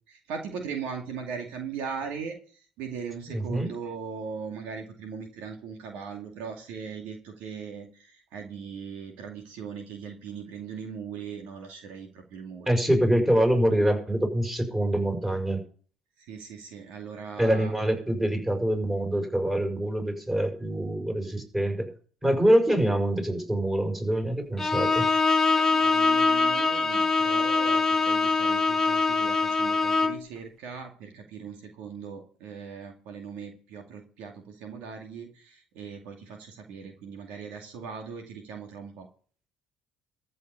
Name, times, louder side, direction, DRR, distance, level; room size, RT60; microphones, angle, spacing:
voice 1, 0.1-12.7 16.2-17.7 25.7-39.1, right 6 dB, 70° right, 3 dB, 2.4 m, -39 dB
voice 2, 3.3-3.7 12.7-15.6 17.4-21.9 22.2-25.1, right 1 dB, 10° right, 3 dB, 6.3 m, -25 dB
Bowed string instrument, 24.6-30.3, left 4 dB, 15° left, 1.3 m, -23 dB
14.0 x 5.6 x 8.2 m, 0.43 s
supercardioid pair, 75°, 3 cm